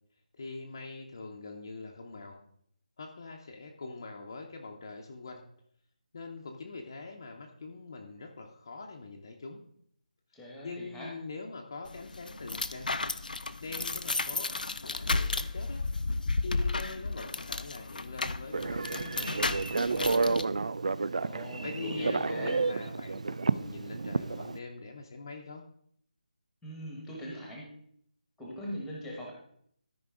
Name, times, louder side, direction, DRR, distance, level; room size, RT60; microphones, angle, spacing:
voice 1, 0.3-2.4 3.0-5.4 6.1-9.6 10.6-12.9 13.6-15.8 16.4-19.4 19.6-20.4 21.1-21.3 21.6-25.7, left 3 dB, 30° left, 1 dB, 0.7 m, -43 dB
voice 2, 10.3-11.1 21.2-22.6 26.6-27.7 28.4-29.3, equal, ahead, -3 dB, 1.0 m, -41 dB
sound 1, 11.8-20.4, left 3 dB, 85° left, 0.6 m, -33 dB
Telephone, 18.5-24.6, right 4 dB, 55° right, 0.3 m, -31 dB
13.0 x 5.1 x 3.6 m, 0.67 s
figure-of-eight pair, 175°, 4 cm